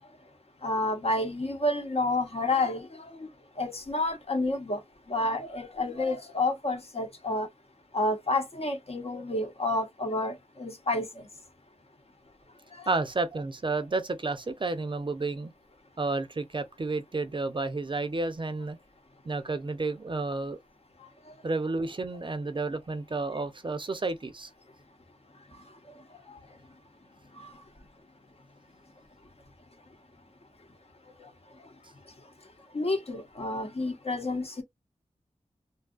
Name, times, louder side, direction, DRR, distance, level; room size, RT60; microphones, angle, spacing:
voice 1, 0.6-2.9 3.6-4.8 5.1-7.5 7.9-11.0 32.7-34.6, left 2 dB, 50° left, 0.9 m, -29 dB
voice 2, 12.9-15.5 16.0-18.8 19.3-20.6 21.4-24.5, right 3 dB, 40° right, 0.5 m, -31 dB
2.6 x 2.3 x 2.4 m
wide cardioid pair, 55°, 13 cm